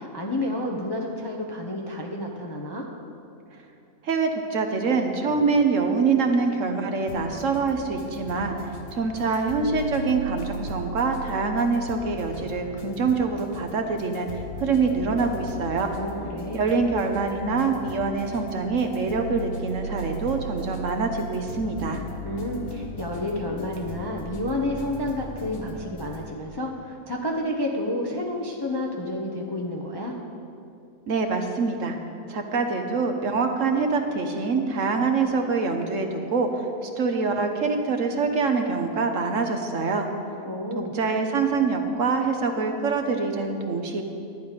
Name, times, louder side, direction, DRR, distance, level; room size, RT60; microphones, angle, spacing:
voice 1, 0.0-2.9 16.0-16.7 22.2-30.2 40.4-40.9, left 1 dB, 20° left, -1 dB, 0.6 m, -30 dB
voice 2, 4.0-8.6 8.9-15.9 16.5-22.0 31.1-32.0 32.3-40.1 40.9-44.0, right 4 dB, 60° right, 4 dB, 1.1 m, -25 dB
sound 1, 7.1-26.3, left 1 dB, 60° left, 1.3 m, -37 dB
11.5 x 10.0 x 5.1 m, 2.7 s
omnidirectional pair, 1.7 m